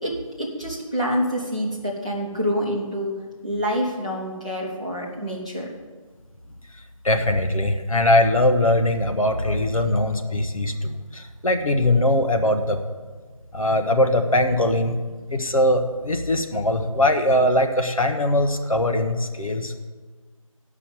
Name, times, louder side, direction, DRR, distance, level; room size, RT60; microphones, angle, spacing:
voice 1, 0.0-3.1 3.4-5.7, equal, 10° left, -6 dB, 1.0 m, -27 dB
voice 2, 7.0-12.8 13.5-15.0 15.3-19.9, left 1 dB, 75° left, 5 dB, 1.4 m, -21 dB
13.0 x 5.6 x 8.2 m, 1.4 s
figure-of-eight pair, 175°, 18 cm